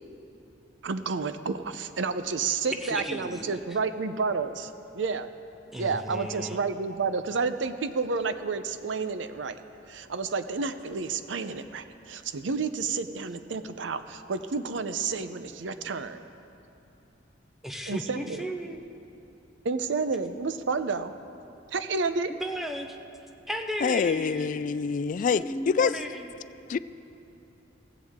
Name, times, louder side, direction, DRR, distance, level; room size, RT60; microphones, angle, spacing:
voice 1, 0.8-5.3 5.7-9.6 9.9-16.2 17.9-18.4 19.6-21.1 21.7-22.3, right 4 dB, 70° right, 11 dB, 0.6 m, -30 dB
voice 2, 2.8-3.6 5.7-6.6 17.6-18.9 22.3-23.0 23.5-24.6 25.3-26.3, equal, ahead, 3 dB, 0.7 m, -35 dB
voice 3, 23.8-26.0 26.7-26.8, left 5 dB, 45° left, 15 dB, 0.3 m, -26 dB
16.0 x 16.0 x 3.6 m, 2.9 s
head